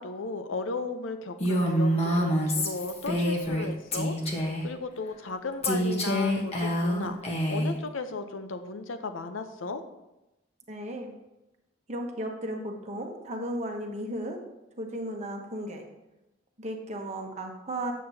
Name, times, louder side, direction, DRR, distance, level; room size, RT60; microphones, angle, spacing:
voice 1, 0.0-9.8, left 3 dB, 70° left, 9 dB, 0.7 m, -35 dB
Female speech woman speaking, 1.4-3.7 3.9-4.7 5.6-7.8, equal, 30° left, 1.0 m, -27 dB
voice 2, 10.7-11.1 11.9-14.4 14.8-15.9 16.6-17.9, right 1 dB, 35° right, 2 dB, 1.0 m, -35 dB
8.7 x 7.4 x 2.8 m, 0.95 s
head